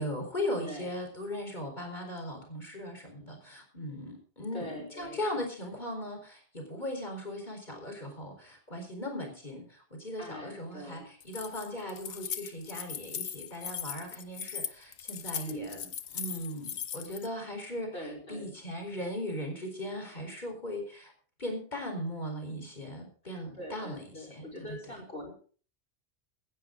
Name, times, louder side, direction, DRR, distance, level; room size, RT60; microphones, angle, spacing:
voice 1, 0.0-17.9 18.3-21.1 21.4-25.0, left 1 dB, 40° left, 3 dB, 4.6 m, -38 dB
voice 2, 0.6-1.0 4.5-5.3 10.2-11.0 15.4-15.8 17.9-18.6 23.5-25.3, equal, 60° left, 0 dB, 5.9 m, -42 dB
Keys jangling, 11.2-17.3, left 8 dB, 85° left, 1.2 m, -39 dB
17.5 x 12.0 x 3.8 m, 0.41 s
omnidirectional pair, 1.2 m